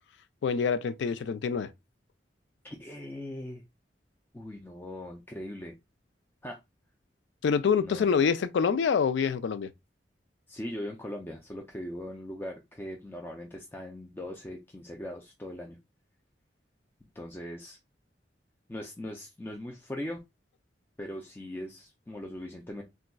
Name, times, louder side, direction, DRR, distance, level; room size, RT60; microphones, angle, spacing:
voice 1, 0.4-1.7 7.4-9.7, left 6 dB, 80° left, 0.3 m, -26 dB
voice 2, 2.6-3.6 4.3-5.8 6.4-6.6 7.8-8.1 10.5-15.8 17.1-17.8 18.7-20.2 21.0-22.8, left 1 dB, 10° left, 0.4 m, -40 dB
4.0 x 2.3 x 2.2 m
head